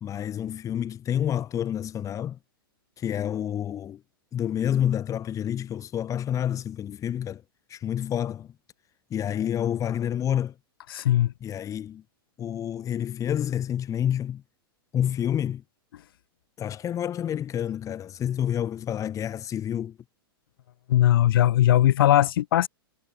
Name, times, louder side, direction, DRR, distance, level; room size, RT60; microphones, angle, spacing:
voice 1, 0.0-2.4 3.0-4.0 4.3-7.4 7.7-8.5 9.1-10.5 11.4-12.0 12.4-14.4 14.9-15.6 16.6-20.0, left 10 dB, 25° left, 2.4 m, -28 dB
voice 2, 10.9-11.3 20.9-22.7, left 13 dB, 65° left, 5.2 m, -19 dB
hypercardioid pair, 110°, 13 cm